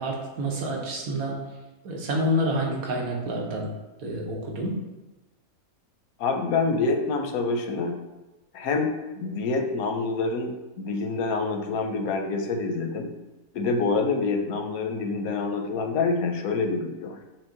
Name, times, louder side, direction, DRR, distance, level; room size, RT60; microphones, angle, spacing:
voice 1, 0.0-1.4 1.8-3.7 4.0-4.8, equal, 80° right, -1 dB, 1.3 m, -28 dB
voice 2, 6.2-8.0 8.5-13.1 13.5-17.2, left 4 dB, 90° left, 4 dB, 1.1 m, -27 dB
6.0 x 2.1 x 3.7 m, 1.1 s
omnidirectional pair, 1.5 m